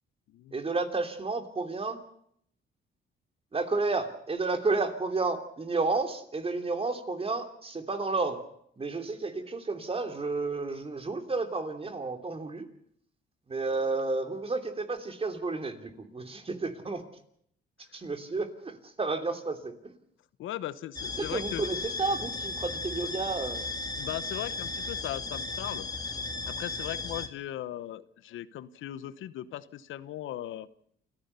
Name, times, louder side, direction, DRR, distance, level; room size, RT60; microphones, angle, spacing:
voice 1, 0.5-2.0 3.5-8.4 8.8-12.7 13.5-17.0 17.9-20.0 21.2-23.6, right 3 dB, 30° right, 7 dB, 3.1 m, -31 dB
voice 2, 20.4-21.7 24.0-25.9 26.5-30.7, left 13 dB, 80° left, 15 dB, 1.0 m, -38 dB
sound 1, 21.0-27.3, left 3 dB, 20° left, 2.2 m, -35 dB
28.0 x 15.0 x 6.9 m, 0.68 s
cardioid pair, 90°, 20 cm